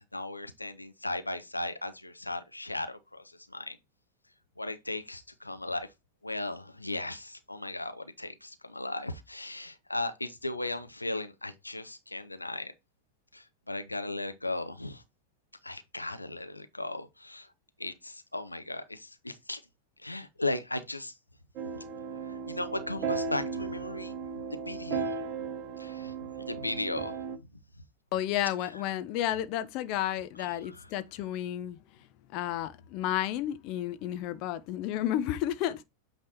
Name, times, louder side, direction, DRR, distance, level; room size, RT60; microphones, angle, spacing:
voice 1, 0.1-3.2 3.5-3.8 4.6-5.9 6.2-12.7 13.3-15.0 15.6-17.5 17.8-19.6 20.0-21.1 22.3-24.1 24.7-25.2 25.8-26.1 26.5-27.2 30.4-30.9, left 2 dB, 85° left, 0.8 m, -36 dB
sound 1, 21.6-27.4, right 5 dB, 40° right, 1.0 m, -36 dB
voice 2, 28.1-31.8 32.3-35.8, left 12 dB, 40° left, 0.6 m, -32 dB
8.5 x 3.4 x 4.3 m
figure-of-eight pair, 90°, 0 cm